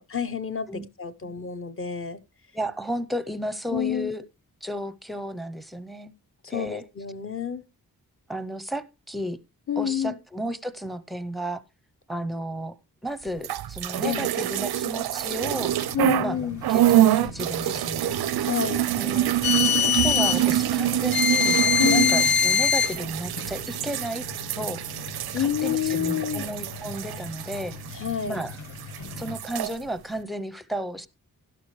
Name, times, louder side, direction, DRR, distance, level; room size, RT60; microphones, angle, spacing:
voice 1, 0.0-0.7 1.0-2.2 3.7-4.1 6.4-7.6 9.7-10.2 14.0-14.3 15.9-16.6 18.4-18.9 21.8-22.2 25.3-26.4 27.9-28.4, left 8 dB, 35° left, 0.7 m, -28 dB
voice 2, 2.5-4.2 4.6-6.1 6.5-6.8 8.3-9.4 9.8-11.6 12.1-12.7 13.0-15.7 16.2-16.4 16.7-18.2 19.0-19.3 20.0-21.6 21.9-24.2 24.6-24.8 25.4-27.7 28.3-28.6 29.2-31.1, right 1 dB, ahead, 0.6 m, -33 dB
sound 1, 13.4-16.3 16.6-28.5 28.8-29.7, right 12 dB, 85° right, 0.5 m, -26 dB
sound 2, 15.4-29.4, left 3 dB, 50° left, 1.4 m, -41 dB
sound 3, 19.4-20.4 21.1-23.0, left 8 dB, 75° left, 0.5 m, -22 dB
12.0 x 11.0 x 3.1 m
wide cardioid pair, 155°, 37 cm